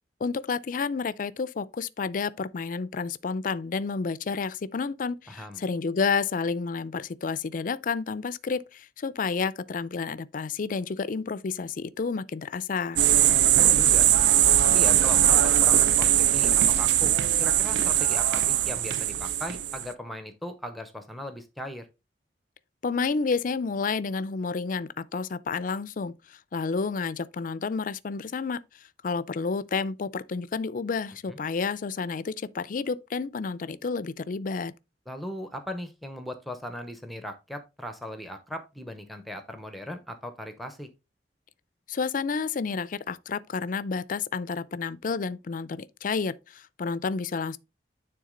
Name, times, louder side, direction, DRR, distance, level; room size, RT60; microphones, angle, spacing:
voice 1, 0.2-13.0 22.8-28.6 29.0-34.7 41.9-47.6, left 5 dB, 50° left, 0.4 m, -30 dB
voice 2, 5.3-5.6 13.2-14.1 14.7-17.1 17.4-21.9 31.3-31.4 35.1-40.9, left 1 dB, ahead, 0.7 m, -38 dB
sound 1, 13.0-19.8, right 11 dB, 75° right, 0.4 m, -21 dB
9.4 x 3.7 x 3.8 m
head